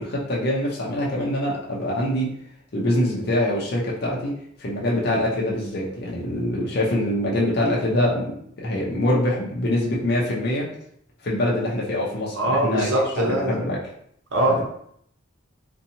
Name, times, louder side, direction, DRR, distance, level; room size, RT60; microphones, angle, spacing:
voice 1, 0.0-2.3 2.7-8.3 8.6-10.7 11.2-13.8 14.5-14.6, left 1 dB, 50° left, -4 dB, 0.6 m, -24 dB
voice 2, 12.4-13.6 14.3-14.6, right 1 dB, 70° right, -1 dB, 0.8 m, -22 dB
2.7 x 2.3 x 2.7 m, 0.67 s
head